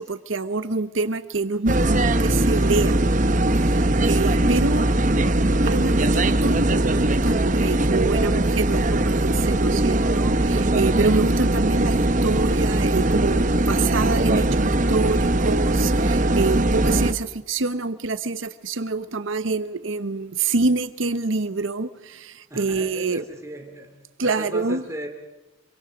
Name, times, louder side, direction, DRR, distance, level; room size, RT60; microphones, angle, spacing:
voice 1, 0.0-3.0 4.0-5.2 5.6-21.9 22.2-22.3 22.6-23.2 24.2-24.8, right 3 dB, 75° right, 1.0 m, -26 dB
sound 1, 1.7-17.1, right 1 dB, 40° right, 0.9 m, -20 dB
voice 2, 22.5-23.9 24.2-25.1, right 1 dB, 15° right, 2.6 m, -36 dB
26.5 x 23.5 x 5.1 m
head